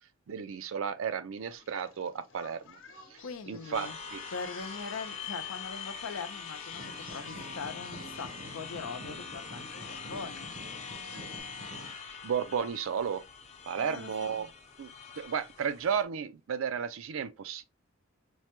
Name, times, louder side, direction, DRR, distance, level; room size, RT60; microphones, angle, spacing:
voice 1, 0.3-2.8 3.1-3.2 3.5-4.2 11.1-11.2 12.2-13.2 13.7-14.5 14.8-17.6, right 7 dB, 70° right, 0.4 m, -33 dB
Singing, 1.5-11.4, left 4 dB, 65° left, 0.8 m, -52 dB
voice 2, 3.2-4.0 4.3-10.5 13.7-14.5, left 5 dB, 85° left, 0.6 m, -41 dB
sound 1, 3.7-16.0, left 6 dB, 35° left, 0.6 m, -43 dB
sound 2, 6.7-11.9, right 1 dB, 85° right, 0.9 m, -48 dB
4.5 x 2.1 x 2.9 m
head